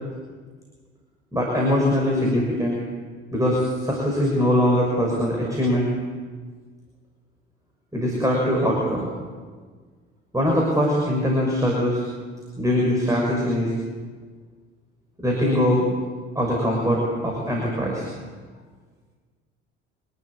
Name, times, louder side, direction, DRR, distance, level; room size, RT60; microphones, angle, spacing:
voice 1, 1.3-2.8 3.3-5.9 7.9-9.1 10.3-12.0 12.6-13.7 15.2-15.9 16.3-18.1, equal, 10° right, -2 dB, 6.1 m, -22 dB
25.5 x 13.0 x 8.7 m, 1.5 s
figure-of-eight pair, 55°, 35 cm